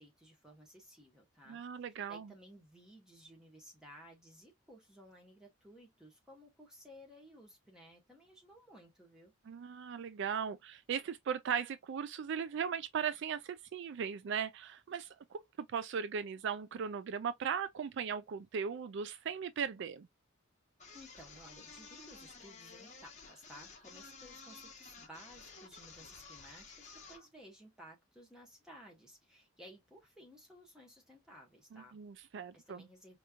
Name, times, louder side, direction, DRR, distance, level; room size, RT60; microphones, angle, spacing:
voice 1, 0.0-1.6 2.1-9.3 20.9-32.0 32.5-33.2, equal, 5° right, 1.4 m, -57 dB
voice 2, 1.5-2.3 9.5-15.4 15.7-20.1 31.7-32.8, right 7 dB, 60° right, 0.3 m, -38 dB
sound 1, 20.8-27.3, left 4 dB, 35° left, 1.1 m, -53 dB
4.4 x 2.9 x 2.4 m
head